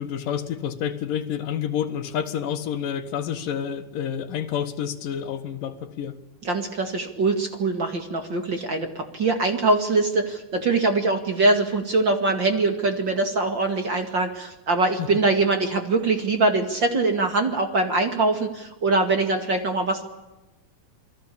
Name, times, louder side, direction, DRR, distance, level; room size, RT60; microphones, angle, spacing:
voice 1, 0.0-6.2 15.0-15.1, left 9 dB, 75° left, 8 dB, 3.1 m, -29 dB
voice 2, 6.4-20.0, right 3 dB, 35° right, 6 dB, 2.4 m, -23 dB
28.0 x 21.0 x 8.5 m, 1.0 s
omnidirectional pair, 4.0 m